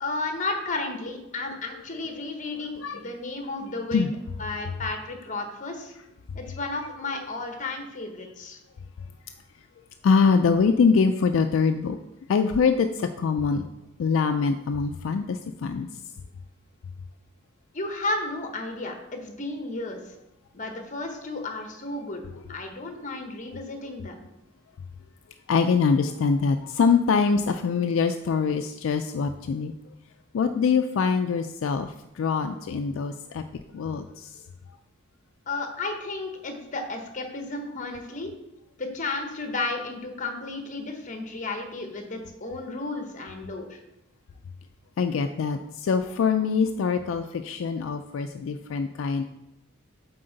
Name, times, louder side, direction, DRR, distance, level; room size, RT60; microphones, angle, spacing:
voice 1, 0.0-4.1 4.4-5.9 6.3-8.6 17.7-20.0 20.5-22.2 22.5-24.2 35.5-38.3 38.8-43.8, left 2 dB, 40° left, 5 dB, 0.9 m, -33 dB
voice 2, 10.0-12.0 12.3-13.6 14.0-15.9 25.5-29.7 30.3-33.4 33.7-34.4 45.0-49.2, left 5 dB, 65° left, 7 dB, 0.3 m, -24 dB
7.6 x 4.3 x 3.9 m, 0.91 s
head